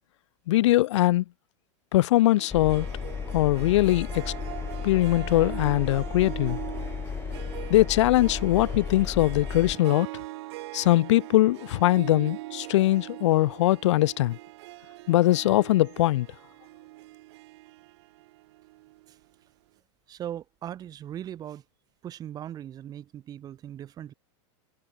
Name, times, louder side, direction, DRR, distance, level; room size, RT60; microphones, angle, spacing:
voice 1, 0.5-1.2 1.9-2.9 3.3-4.3 4.8-6.6 7.7-10.1 10.7-14.4 15.1-16.3, left 16 dB, 70° left, 0.8 m, -21 dB
Harp, 2.4-19.2, right 20 dB, 55° right, 5.4 m, -41 dB
Engine, 2.5-9.8, left 6 dB, 15° left, 2.3 m, -34 dB
voice 2, 20.1-21.6 22.0-24.1, right 11 dB, 25° right, 3.3 m, -39 dB
supercardioid pair, 155°, 16 cm